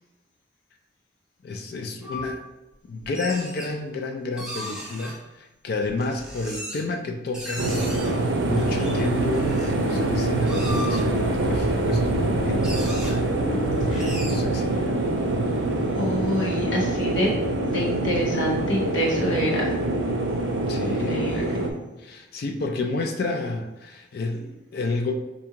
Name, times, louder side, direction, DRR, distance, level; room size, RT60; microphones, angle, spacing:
voice 1, 1.4-2.4 2.8-7.7 8.2-13.2 14.2-14.9 20.7-21.2 22.0-25.1, left 3 dB, 50° left, 3 dB, 0.3 m, -30 dB
sound 1, 2.0-2.2 3.0-3.7 4.4-5.1 5.9-6.9 7.3-8.1 8.6-9.7 10.2-11.0 12.0-12.1 12.3-12.4 12.6-13.1 13.9-14.3, equal, 5° right, 0.6 m, -36 dB
sound 2, 7.6-21.7, right 2 dB, 70° right, 0.5 m, -24 dB
voice 2, 16.0-17.3 17.6-19.7 20.8-21.4, equal, 75° left, -2 dB, 1.0 m, -27 dB
4.6 x 2.6 x 2.8 m, 1.0 s
head